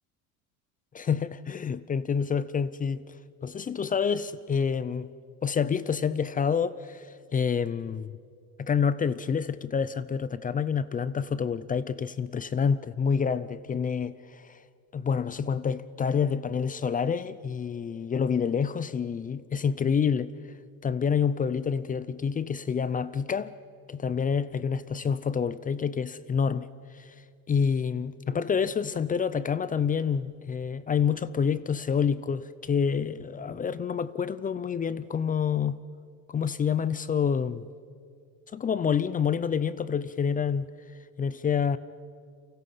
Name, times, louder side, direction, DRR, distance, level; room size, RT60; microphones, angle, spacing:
voice 1, 0.9-3.0 3.4-5.1 5.4-7.1 7.3-8.2 8.6-14.6 14.9-20.3 20.8-23.5 23.9-26.7 26.9-27.1 27.5-35.8 36.3-37.6 38.5-40.7 41.2-41.8, left 6 dB, 20° left, 0.5 m, -28 dB
29.5 x 24.0 x 5.7 m
supercardioid pair, 125°, 40 cm